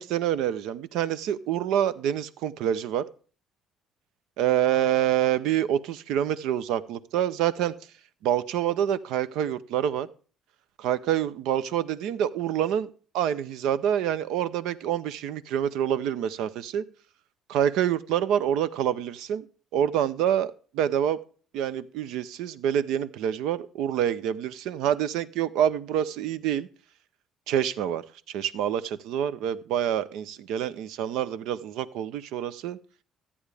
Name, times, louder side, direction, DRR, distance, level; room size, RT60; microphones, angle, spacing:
voice 1, 0.0-3.0 4.4-7.7 8.2-10.1 10.8-16.8 17.5-19.4 19.7-21.2 21.5-26.7 27.5-28.0 28.3-32.8, right 10 dB, 90° right, 0.6 m, -27 dB
13.5 x 8.6 x 3.4 m
cardioid pair, 130°, 0 cm